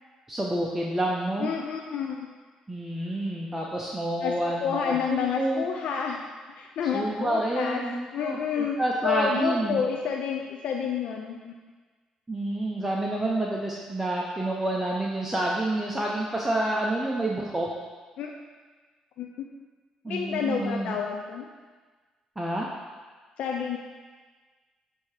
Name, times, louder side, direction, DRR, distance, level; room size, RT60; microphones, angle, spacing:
voice 1, 0.3-1.5 2.7-5.7 6.9-9.8 12.3-17.7 20.0-21.0 22.4-22.7, right 1 dB, 15° right, -3 dB, 0.7 m, -28 dB
voice 2, 1.4-2.3 4.2-4.3 4.6-6.2 6.6-7.8 8.1-8.8 9.0-11.5 18.2-18.3 19.2-19.3 20.1-21.5 23.4-23.8, left 7 dB, 70° left, 1 dB, 0.4 m, -29 dB
7.1 x 2.8 x 4.9 m, 1.4 s
supercardioid pair, 65°, 2 cm